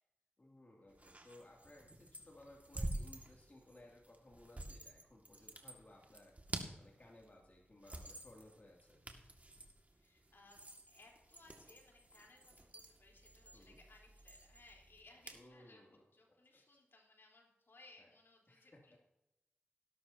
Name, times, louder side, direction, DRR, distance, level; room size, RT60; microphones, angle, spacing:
voice 1, 0.4-6.3 6.8-9.0 13.5-13.8 15.3-16.0 18.0-18.1 18.5-18.8, left 1 dB, 40° left, -2 dB, 2.5 m, -60 dB
sound 1, 0.9-15.5, right 1 dB, 40° right, 1.9 m, -50 dB
voice 2, 9.9-19.0, left 2 dB, 70° left, -1 dB, 3.8 m, -64 dB
18.0 x 11.5 x 2.8 m, 0.93 s
cardioid pair, 45°, 4 cm